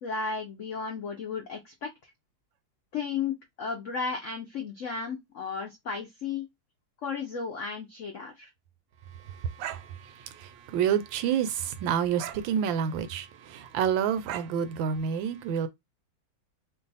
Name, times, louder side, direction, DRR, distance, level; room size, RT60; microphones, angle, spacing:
voice 1, 0.0-1.9 2.9-6.4 7.0-8.5, left 5 dB, 85° left, 0.6 m, -34 dB
voice 2, 9.2-15.7, right 8 dB, 80° right, 1.3 m, -29 dB
3.0 x 2.3 x 4.0 m
omnidirectional pair, 2.1 m